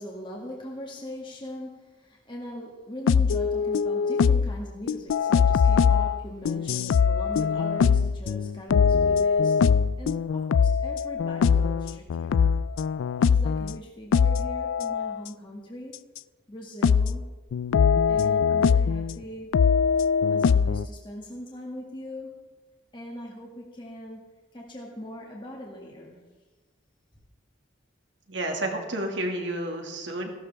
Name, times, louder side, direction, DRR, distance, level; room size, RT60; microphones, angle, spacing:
voice 1, 0.0-12.6 13.2-16.1 16.5-17.3 18.1-19.6 20.3-22.5 22.9-24.2 24.5-26.2, equal, 25° left, -2 dB, 1.9 m, -40 dB
sound 1, 3.1-4.6 4.9-13.8 14.1-15.2 16.2-16.3 16.8-17.2 17.5-19.2 19.5-20.9, left 6 dB, 90° left, 0.3 m, -22 dB
voice 2, 28.3-30.3, right 1 dB, 70° right, 2 dB, 2.1 m, -30 dB
16.0 x 12.5 x 3.5 m, 1.2 s
head